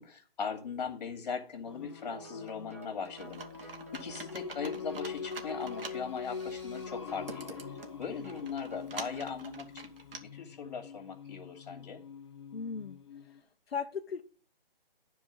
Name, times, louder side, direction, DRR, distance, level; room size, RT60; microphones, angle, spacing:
voice 1, 0.0-9.9 10.2-12.0, left 6 dB, 45° left, 6 dB, 2.5 m, -40 dB
Singing, 1.7-13.4, left 6 dB, 30° left, 0.8 m, -44 dB
sound 1, 2.0-9.4, right 3 dB, 15° right, 0.5 m, -53 dB
Computer keyboard, 3.2-10.2, right 3 dB, 70° right, 2.0 m, -47 dB
voice 2, 12.5-13.0 13.2-13.4 13.7-14.2, left 6 dB, 85° left, 4 dB, 1.1 m, -37 dB
11.0 x 4.7 x 7.5 m, 0.40 s
hypercardioid pair, 165°, 29 cm